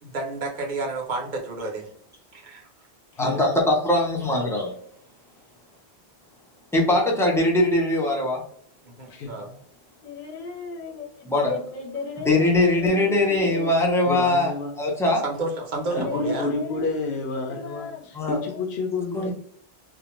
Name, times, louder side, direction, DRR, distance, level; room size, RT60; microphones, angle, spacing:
voice 1, 0.0-1.9 2.3-2.7 8.8-9.5 15.2-16.5, right 3 dB, 50° right, 1 dB, 0.8 m, -31 dB
voice 2, 3.2-4.7 6.7-8.4 11.3-11.6 12.2-15.2 15.9-16.0 18.1-18.4 19.1-19.3, left 1 dB, 5° left, -2 dB, 0.5 m, -21 dB
voice 3, 9.1-9.4 14.1-14.8 16.0-17.9 18.3-19.3, left 3 dB, 85° left, 0 dB, 0.8 m, -29 dB
voice 4, 10.0-13.7 16.0-16.9 17.5-18.7, left 4 dB, 50° left, 0 dB, 0.8 m, -35 dB
2.5 x 2.2 x 3.0 m, 0.63 s
omnidirectional pair, 1.1 m